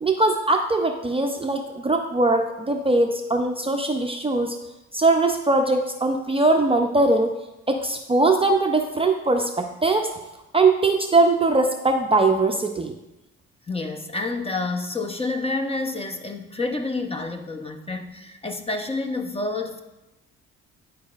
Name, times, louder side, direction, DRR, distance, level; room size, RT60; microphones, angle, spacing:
voice 1, 0.0-4.6 4.9-7.4 7.7-10.1 10.5-12.9, right 2 dB, 20° right, 3 dB, 0.5 m, -21 dB
voice 2, 13.7-19.8, left 3 dB, 20° left, 5 dB, 0.6 m, -29 dB
10.5 x 4.7 x 2.4 m, 0.98 s
cardioid pair, 90°, 30 cm